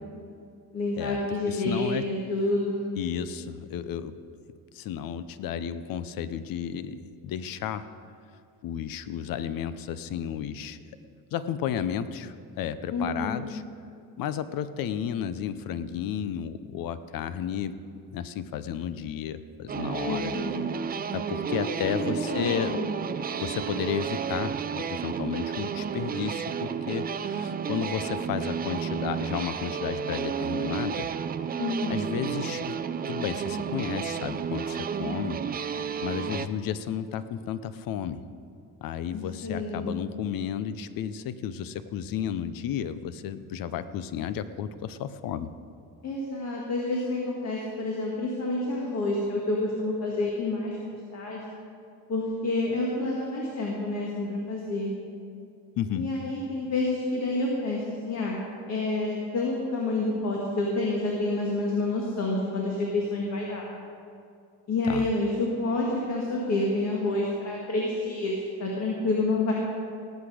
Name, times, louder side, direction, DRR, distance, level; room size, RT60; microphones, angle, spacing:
voice 1, 0.7-2.9 12.9-13.5 20.0-20.7 21.5-22.9 31.6-32.1 39.1-40.0 46.0-51.4 52.1-54.9 56.0-58.4 58.7-63.7 64.7-69.5, left 2 dB, 45° left, -2 dB, 1.9 m, -29 dB
voice 2, 1.5-2.1 3.0-4.1 4.7-7.9 8.6-10.8 11.3-13.6 14.2-17.7 18.1-20.3 21.1-22.8 23.4-31.1 31.9-35.4 36.0-38.2 38.8-45.5 55.8-56.1 64.9-65.1, left 9 dB, 65° left, 13 dB, 0.7 m, -33 dB
sound 1, 19.7-36.5, right 7 dB, 25° right, 0.4 m, -32 dB
18.5 x 8.3 x 5.0 m, 2.4 s
cardioid pair, 135°, 36 cm